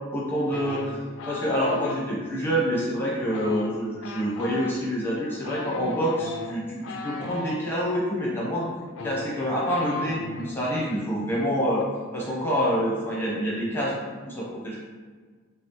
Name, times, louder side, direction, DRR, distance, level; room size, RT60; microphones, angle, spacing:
voice 1, 0.1-1.0 1.3-8.7 9.0-11.9 12.1-14.8, equal, 10° left, -6 dB, 0.8 m, -27 dB
sound 1, 0.5-2.0 3.2-7.6 8.5-8.6 8.9-10.5 10.8-11.1 11.3-11.8, left 3 dB, 80° left, 0.3 m, -37 dB
5.4 x 2.0 x 3.0 m, 1.5 s
head